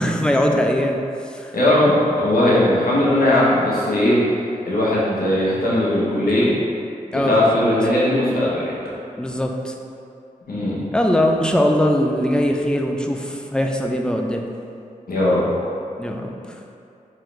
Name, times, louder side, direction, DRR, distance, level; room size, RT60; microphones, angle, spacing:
voice 1, 0.0-1.5 7.1-7.6 9.2-9.7 10.9-14.5 16.0-16.6, equal, 5° left, 2 dB, 0.4 m, -21 dB
voice 2, 1.5-4.3 4.6-6.5 7.1-8.7 10.5-10.8 15.1-15.5, left 1 dB, 85° left, -7 dB, 1.0 m, -18 dB
3.8 x 3.0 x 3.2 m, 2.6 s
cardioid pair, 40°, 15 cm